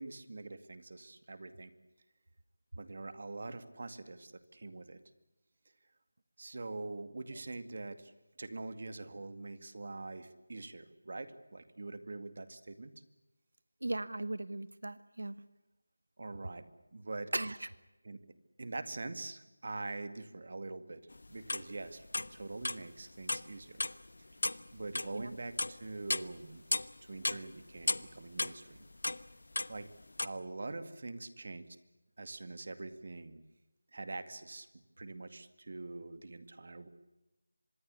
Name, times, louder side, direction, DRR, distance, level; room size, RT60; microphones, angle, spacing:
voice 1, 0.0-1.7 2.8-5.0 6.4-8.1 8.4-12.9 16.2-17.3 18.0-18.2 18.6-23.8 24.7-26.6 27.0-28.9 29.7-29.9 30.2-31.7 32.2-33.4 33.9-34.7 35.0-36.9, right 2 dB, 45° right, 12 dB, 2.2 m, -44 dB
voice 2, 13.8-15.4 17.3-17.7 25.1-25.3, right 2 dB, 85° right, 15 dB, 1.3 m, -37 dB
sound 1, 21.1-22.8 23.2-23.5 23.8-26.9 27.2-30.3, left 2 dB, 65° left, 1.0 m, -34 dB
25.5 x 21.0 x 8.4 m, 1.0 s
figure-of-eight pair, 175°, 0 cm